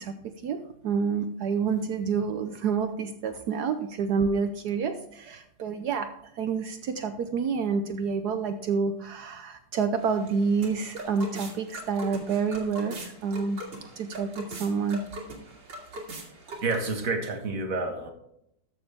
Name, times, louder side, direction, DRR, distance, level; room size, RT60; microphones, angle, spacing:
voice 1, 0.0-6.1 6.4-13.6 14.0-15.1, right 5 dB, 65° right, 8 dB, 1.2 m, -28 dB
sound 1, 10.0-17.1, right 1 dB, 85° right, 2.8 m, -41 dB
voice 2, 16.6-18.1, right 3 dB, 50° right, 4 dB, 1.9 m, -29 dB
13.5 x 7.0 x 3.5 m, 0.75 s
omnidirectional pair, 1.9 m